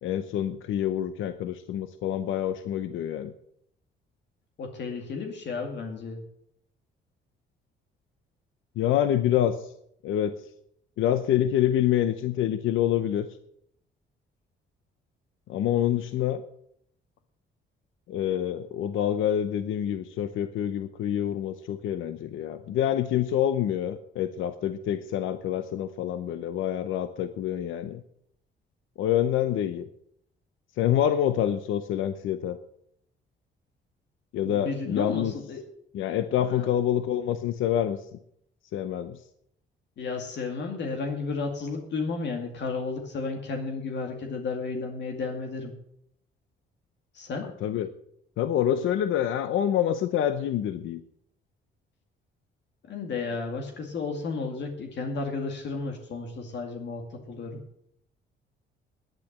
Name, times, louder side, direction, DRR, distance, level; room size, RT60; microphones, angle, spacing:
voice 1, 0.0-3.3 8.8-9.7 10.0-10.5 11.0-13.3 15.5-16.4 18.1-28.0 29.0-29.9 30.8-32.6 34.3-35.3 35.9-38.1 38.7-39.2 47.6-47.9 48.4-51.0, left 10 dB, 80° left, 11 dB, 0.8 m, -27 dB
voice 2, 4.6-6.2 34.4-35.6 36.4-36.7 40.0-45.7 47.1-47.5 52.8-57.6, left 4 dB, 65° left, 3 dB, 2.2 m, -33 dB
10.5 x 9.0 x 7.4 m, 0.71 s
cardioid pair, 90°, 20 cm